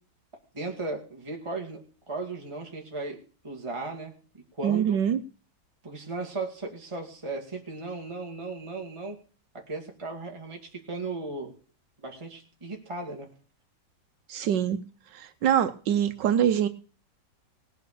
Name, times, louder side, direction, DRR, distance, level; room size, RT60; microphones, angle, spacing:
voice 1, 0.5-1.8 2.1-3.2 3.4-4.1 4.6-5.0 5.8-9.2 9.5-11.5 12.0-13.3, right 3 dB, 15° right, 1 dB, 2.0 m, -36 dB
voice 2, 4.6-5.2 14.3-14.8 15.1-16.7, right 9 dB, 80° right, 9 dB, 1.4 m, -24 dB
18.5 x 6.5 x 6.8 m, 0.38 s
omnidirectional pair, 1.9 m